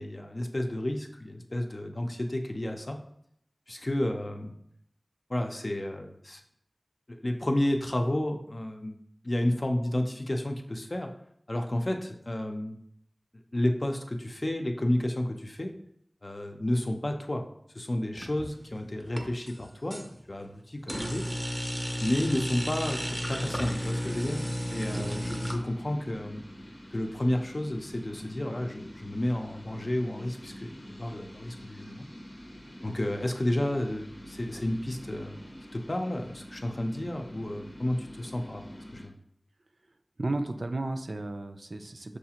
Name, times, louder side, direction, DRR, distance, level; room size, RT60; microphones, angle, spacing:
voice 1, 0.0-3.0 3.7-4.5 5.3-6.4 7.1-9.0 9.2-11.1 11.5-12.7 13.5-15.7 16.2-17.4 17.7-21.2 22.0-26.4 26.9-32.1 32.8-35.4 35.7-38.6 38.9-39.2, left 1 dB, 50° left, 4 dB, 0.5 m, -31 dB
sound 1, 18.1-18.6 19.0-20.1 20.9-25.6, equal, 15° right, 0.5 m, -33 dB
sound 2, 23.3-39.1, equal, 90° left, 0.7 m, -46 dB
voice 2, 40.2-42.2, right 2 dB, 75° right, 6 dB, 0.3 m, -33 dB
6.2 x 2.4 x 2.8 m, 0.71 s
wide cardioid pair, 55°, 0 cm